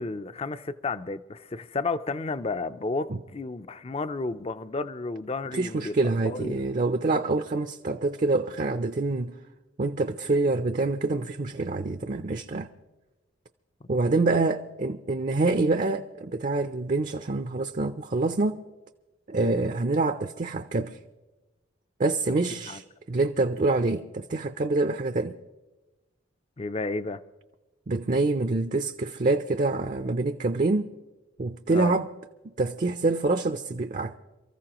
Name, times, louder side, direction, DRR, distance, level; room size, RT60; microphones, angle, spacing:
voice 1, 0.0-6.0 6.2-6.6 13.9-14.0 14.3-14.4 22.7-22.8 26.6-27.2 31.7-32.0, left 3 dB, 30° left, 0.5 m, -32 dB
voice 2, 5.5-9.3 9.8-12.7 13.9-18.6 19.3-21.0 22.0-25.4 27.9-30.9 31.4-32.1 32.6-34.2, right 3 dB, 40° right, 0.5 m, -26 dB
28.5 x 14.5 x 3.0 m
head